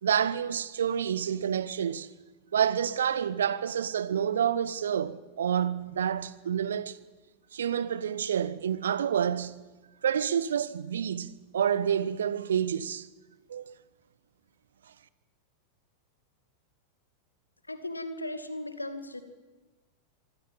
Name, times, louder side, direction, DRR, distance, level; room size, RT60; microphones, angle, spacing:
voice 1, 0.0-2.1 2.5-7.0 7.5-9.6 10.0-13.1 13.5-13.7, right 8 dB, 65° right, 1.3 m, -28 dB
voice 2, 17.7-19.2, left 1 dB, 85° left, 2.3 m, -37 dB
25.5 x 23.5 x 7.7 m
figure-of-eight pair, 90°, 0 cm